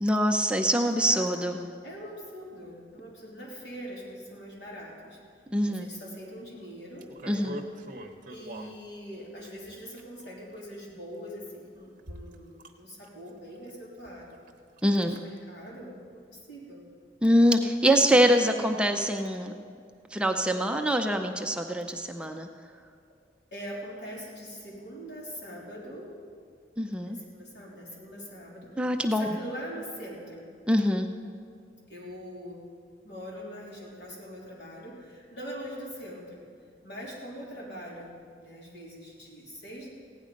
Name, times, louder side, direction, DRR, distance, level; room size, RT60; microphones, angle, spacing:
voice 1, 0.0-1.7 5.5-5.9 7.3-7.6 14.8-15.1 17.2-19.5 20.1-22.5 26.8-27.2 28.8-29.3 30.7-31.1, equal, 5° right, 4 dB, 0.5 m, -24 dB
voice 2, 1.0-5.2 5.7-7.5 8.3-14.4 15.0-16.8 18.0-18.3 18.6-19.0 23.5-26.3 27.0-30.5 31.9-32.7 33.0-36.5 36.8-39.9, equal, 80° left, -5 dB, 3.5 m, -43 dB
sound 1, 7.0-8.7 9.4-10.3 11.2-11.3 12.0-12.7 13.0-13.3 13.7-13.8 14.2-14.5 14.8-15.2 15.6-15.7, right 1 dB, 50° right, 0.9 m, -42 dB
16.0 x 9.7 x 5.2 m, 2.2 s
head